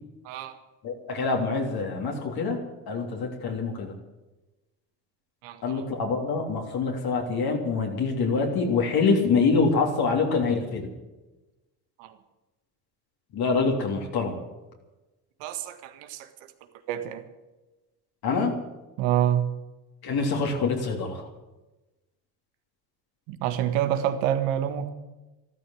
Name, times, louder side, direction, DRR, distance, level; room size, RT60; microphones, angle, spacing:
voice 1, 0.2-0.6 5.4-5.8 12.0-12.1 15.4-16.3 16.9-17.2 19.0-19.5 23.3-24.9, right 11 dB, 80° right, 9 dB, 1.8 m, -27 dB
voice 2, 0.8-2.6 2.9-3.9 5.6-10.9 13.3-14.3 18.2-18.5 20.0-21.2, left 4 dB, 60° left, 1 dB, 3.3 m, -25 dB
13.5 x 13.0 x 7.8 m, 1.1 s
supercardioid pair, 80°, 42 cm